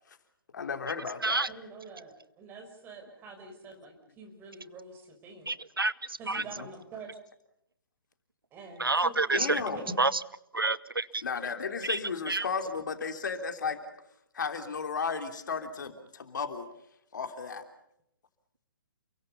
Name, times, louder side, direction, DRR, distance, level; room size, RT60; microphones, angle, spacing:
voice 1, 0.5-1.4 6.4-6.7 9.3-9.9 11.2-13.8 14.3-16.7 17.1-17.6, left 5 dB, 60° left, 6 dB, 3.3 m, -34 dB
voice 2, 1.5-5.5 6.2-7.2 8.5-9.8, right 3 dB, 20° right, 5 dB, 5.6 m, -46 dB
voice 3, 5.5-6.4 8.8-9.6 10.0-10.2 10.5-11.2 11.8-12.0 12.3-12.4, right 3 dB, 85° right, 19 dB, 0.9 m, -28 dB
29.5 x 23.0 x 5.5 m, 0.77 s
figure-of-eight pair, 130°, 12 cm